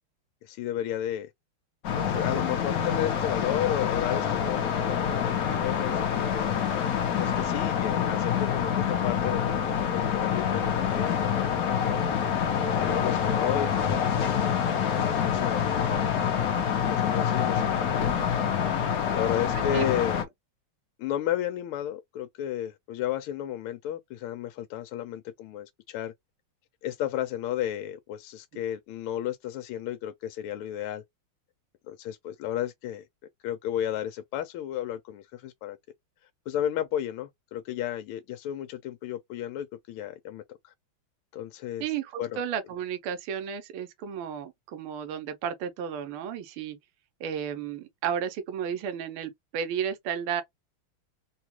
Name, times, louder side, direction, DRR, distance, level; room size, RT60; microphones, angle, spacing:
voice 1, 0.4-1.3 1.9-6.6 7.2-12.0 12.8-14.6 14.9-16.0 16.3-18.0 19.1-20.3 21.0-26.1 26.8-31.0 31.9-33.1 33.4-35.8 36.5-40.7 41.3-41.9 42.2-42.4, left 11 dB, 80° left, 1.4 m, -33 dB
sound 1, 1.8-20.2, left 8 dB, 65° left, 0.9 m, -26 dB
voice 2, 41.8-46.8 47.2-50.4, right 8 dB, 80° right, 1.6 m, -33 dB
3.8 x 2.4 x 2.9 m
omnidirectional pair, 2.4 m